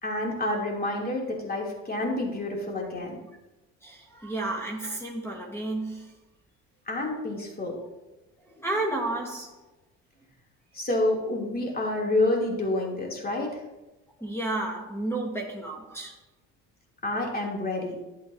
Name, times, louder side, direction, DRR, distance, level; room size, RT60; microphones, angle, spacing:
voice 1, 0.0-3.2 6.9-7.8 10.7-13.6 17.0-18.0, left 2 dB, 25° left, 3.1 m, -28 dB
voice 2, 3.8-6.1 8.5-9.6 14.2-16.1, right 2 dB, 5° left, 1.6 m, -32 dB
11.5 x 8.3 x 2.8 m
supercardioid pair, 75°, 37 cm